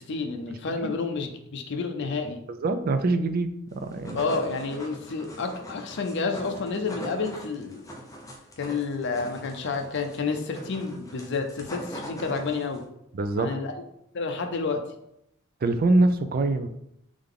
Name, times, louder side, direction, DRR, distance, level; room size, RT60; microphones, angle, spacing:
voice 1, 0.0-2.4 4.1-7.8 8.6-12.8 13.4-13.7 14.1-14.8, left 4 dB, 60° left, 5 dB, 0.5 m, -30 dB
voice 2, 2.6-4.2 13.1-13.6 15.6-16.7, right 2 dB, 45° right, 9 dB, 0.4 m, -24 dB
sound 1, 3.8-12.8, equal, 15° left, 0.6 m, -41 dB
3.6 x 3.4 x 3.7 m, 0.80 s
head